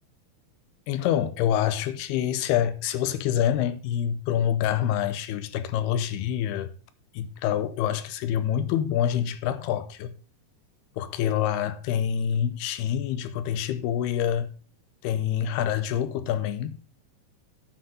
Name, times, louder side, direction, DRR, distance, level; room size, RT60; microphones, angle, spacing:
voice 1, 0.9-6.7 7.1-10.1 11.0-14.5 15.0-16.8, left 10 dB, 80° left, 2.7 m, -26 dB
10.0 x 6.6 x 5.5 m
omnidirectional pair, 4.7 m